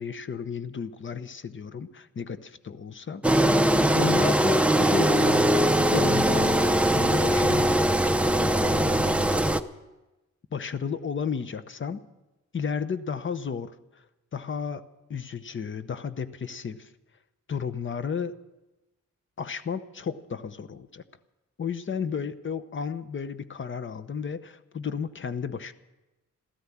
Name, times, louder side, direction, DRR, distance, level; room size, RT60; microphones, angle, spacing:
voice 1, 0.0-3.2 3.9-7.8 8.5-9.4 10.5-12.0 12.5-14.0 14.3-16.9 17.5-18.3 19.4-21.0 21.6-25.7, left 6 dB, 40° left, 13 dB, 0.8 m, -33 dB
Engine, 3.2-9.6, right 1 dB, 5° right, 0.5 m, -21 dB
14.0 x 13.5 x 7.3 m, 1.0 s
wide cardioid pair, 140°, 30 cm